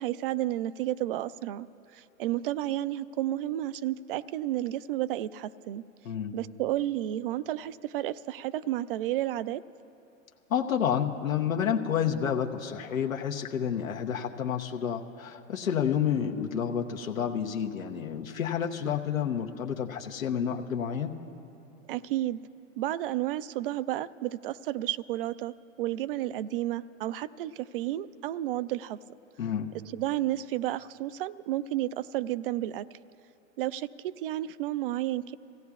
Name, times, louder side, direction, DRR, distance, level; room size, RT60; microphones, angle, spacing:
voice 1, 0.0-1.7 1.9-5.8 6.3-9.6 21.9-22.4 22.8-29.0 29.9-32.9 33.6-35.3, right 14 dB, 45° right, 17 dB, 0.4 m, -31 dB
voice 2, 10.5-21.1 29.4-29.7, left 8 dB, 75° left, 3 dB, 1.0 m, -29 dB
25.0 x 16.0 x 2.4 m, 2.7 s
hypercardioid pair, 105°, 40 cm